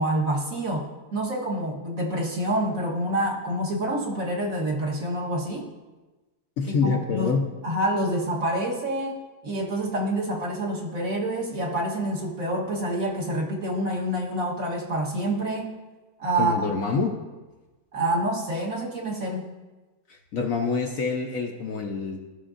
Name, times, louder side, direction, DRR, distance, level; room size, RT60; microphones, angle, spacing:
voice 1, 0.0-5.7 6.8-7.3 7.6-9.2 9.4-15.7 16.2-16.7 17.9-19.5, right 1 dB, 55° right, -2 dB, 1.6 m, -27 dB
voice 2, 6.6-7.4 16.4-17.1 20.1-22.2, left 4 dB, 60° left, 2 dB, 1.0 m, -26 dB
15.0 x 5.8 x 2.5 m, 1.2 s
omnidirectional pair, 1.9 m